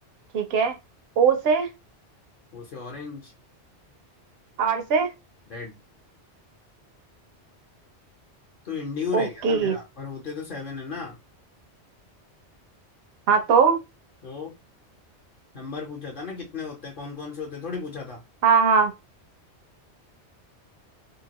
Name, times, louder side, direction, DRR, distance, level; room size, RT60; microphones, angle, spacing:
voice 1, 0.3-0.8 1.2-1.7 4.6-5.1 9.1-9.8 13.3-13.8 18.4-18.9, right 6 dB, 65° right, 0.8 m, -20 dB
voice 2, 2.5-3.3 5.5-5.8 8.6-11.2 14.2-14.5 15.5-18.2, left 5 dB, 50° left, 0.9 m, -35 dB
2.8 x 2.4 x 2.9 m
omnidirectional pair, 1.2 m